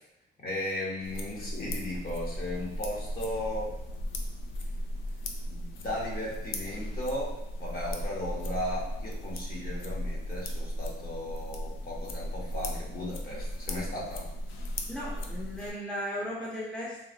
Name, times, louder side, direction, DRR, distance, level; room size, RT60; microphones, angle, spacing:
voice 1, 0.4-3.7 5.5-14.2, left 1 dB, 50° left, -4 dB, 1.3 m, -36 dB
sound 1, 1.0-15.7, equal, 80° left, 0.5 m, -36 dB
voice 2, 14.9-17.1, equal, 5° left, -5 dB, 0.8 m, -36 dB
3.9 x 2.4 x 2.8 m, 0.89 s
cardioid pair, 90°, 20 cm